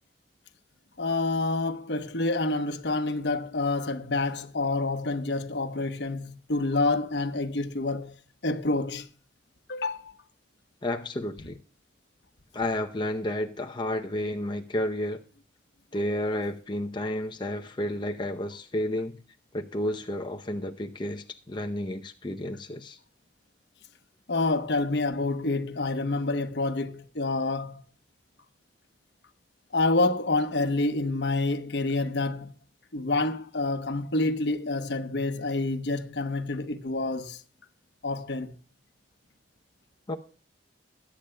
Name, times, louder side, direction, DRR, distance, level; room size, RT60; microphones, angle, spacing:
voice 1, 1.0-8.2 8.4-9.1 9.7-10.1 24.3-27.8 29.7-32.5 32.9-37.4 38.0-38.5, left 2 dB, 65° left, 1.0 m, -28 dB
voice 2, 10.8-11.6 12.5-15.2 15.9-19.2 19.5-23.0 40.1-40.2, left 1 dB, 25° left, 0.7 m, -31 dB
21.0 x 10.0 x 2.2 m
head